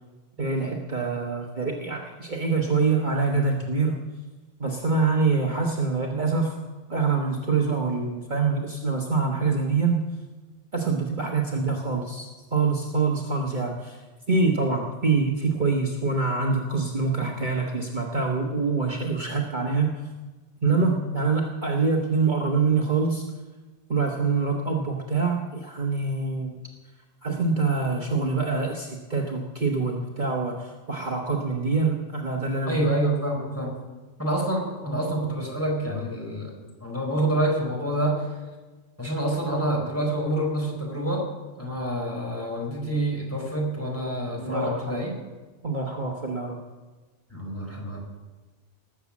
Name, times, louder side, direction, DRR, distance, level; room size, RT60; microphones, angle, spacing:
voice 1, 0.4-4.0 4.6-6.6 6.9-10.0 10.7-14.0 14.3-19.9 20.6-23.2 23.9-26.5 27.2-32.8 44.4-45.0 45.6-46.6, right 4 dB, 40° right, 0 dB, 1.5 m, -25 dB
voice 2, 32.7-33.8 34.2-36.5 36.8-38.3 39.0-41.3 41.6-45.2 47.3-48.0, right 1 dB, 10° left, -2 dB, 4.2 m, -27 dB
19.5 x 7.5 x 7.3 m, 1.3 s
omnidirectional pair, 1.2 m